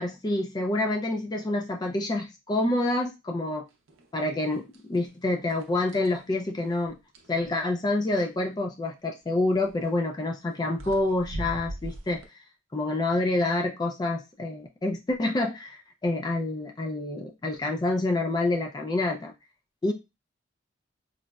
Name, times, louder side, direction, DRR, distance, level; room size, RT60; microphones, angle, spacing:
voice 1, 0.0-3.7 4.1-7.0 7.3-12.2 12.7-19.3 19.8-19.9, left 2 dB, 20° left, 2 dB, 0.3 m, -27 dB
sound 1, 3.9-4.1 4.4-5.1 5.5-7.4 9.6-9.9 10.5-10.6 10.8-12.3, right 1 dB, 85° right, 0.5 m, -40 dB
3.8 x 2.0 x 2.3 m, 0.25 s
head